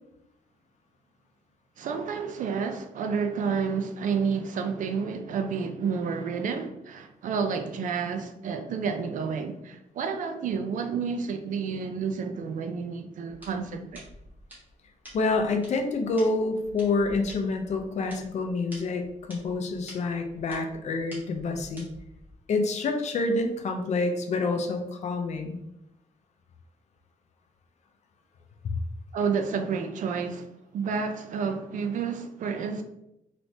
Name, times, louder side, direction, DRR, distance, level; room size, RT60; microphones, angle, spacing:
voice 1, 1.8-14.1 29.1-32.8, right 5 dB, 70° right, 0.4 m, -30 dB
sound 1, 13.3-22.3, equal, 10° right, 1.2 m, -49 dB
voice 2, 15.1-21.9 22.5-25.6, left 3 dB, 55° left, 0.5 m, -27 dB
3.2 x 2.9 x 2.7 m
wide cardioid pair, 165°, 14 cm